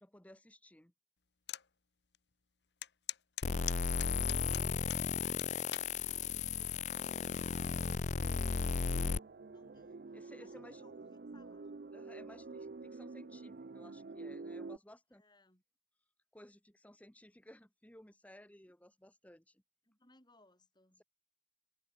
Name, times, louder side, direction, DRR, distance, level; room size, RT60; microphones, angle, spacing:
voice 1, 0.0-0.9 9.7-9.8 10.1-10.8 11.9-15.2 16.3-19.6, left 1 dB, 10° left, 1.4 m, -58 dB
sound 1, 1.5-1.7 2.1-2.2 2.8-5.0 5.4-5.9 6.6-6.9, left 13 dB, 70° left, 1.3 m, -41 dB
sound 2, 3.4-9.2, left 5 dB, 40° left, 0.5 m, -35 dB
voice 2, 8.0-11.7 15.1-15.6 19.9-21.0, left 1 dB, 25° left, 7.6 m, -66 dB
sound 3, 8.9-14.8, right 3 dB, 55° right, 0.6 m, -48 dB
head